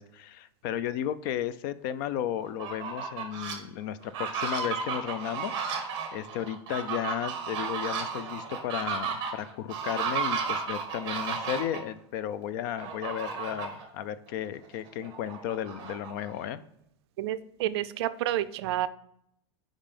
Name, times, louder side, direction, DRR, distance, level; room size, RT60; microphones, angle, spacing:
voice 1, 0.0-5.6 6.1-16.6, left 10 dB, 45° left, 15 dB, 0.4 m, -34 dB
Fowl, 2.5-3.5 4.0-11.8 12.8-13.8 14.3-14.4 14.7-16.5, right 6 dB, 30° right, 1.4 m, -33 dB
voice 2, 17.2-18.9, right 13 dB, 60° right, 14 dB, 0.4 m, -29 dB
5.4 x 5.0 x 5.0 m, 0.74 s
supercardioid pair, 165°, 15 cm